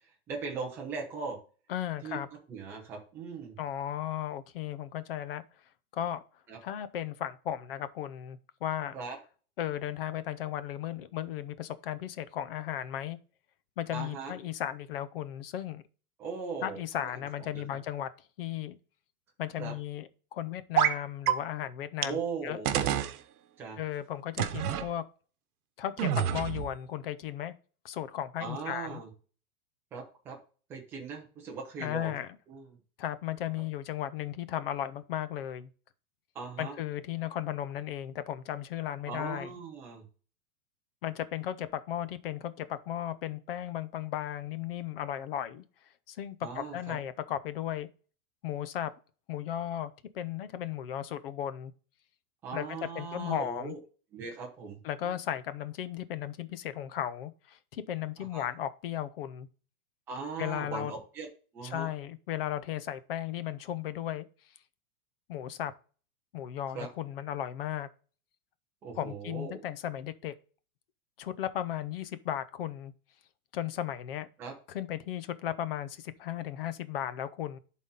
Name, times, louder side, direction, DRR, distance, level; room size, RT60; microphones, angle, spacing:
voice 1, 0.3-1.4 2.0-2.2 2.5-3.6 6.5-6.6 8.9-9.2 13.9-14.3 16.2-17.1 17.5-17.6 19.6-19.7 22.0-23.0 23.6-23.8 28.4-29.1 29.9-30.4 30.7-32.2 32.5-32.7 36.3-36.8 39.1-40.0 46.4-47.0 52.4-53.8 54.1-55.1 58.2-58.4 60.1-61.3 61.5-61.9 66.7-66.9 68.8-69.6 74.4-74.5, right 5 dB, 5° right, 0.4 m, -39 dB
voice 2, 1.7-2.3 3.6-5.4 5.9-6.2 6.6-8.9 9.6-13.2 13.8-15.8 16.6-18.1 18.4-18.8 19.4-22.6 23.8-25.0 25.8-27.5 27.8-29.0 31.8-32.4 33.0-35.7 36.6-39.5 41.0-45.6 46.1-47.9 48.4-48.9 49.3-51.7 52.5-53.8 54.8-59.5 60.4-60.9 61.6-64.3 65.3-65.7 66.3-67.9 69.0-70.3 71.2-72.9 73.5-74.3 74.7-77.6, left 11 dB, 40° left, 0.6 m, -35 dB
sound 1, 20.8-21.0 21.3-21.4 22.0-22.1 22.7-23.1 24.4-24.9 26.0-26.7, right 11 dB, 75° right, 1.0 m, -27 dB
11.0 x 4.2 x 3.7 m
supercardioid pair, 175°, 44 cm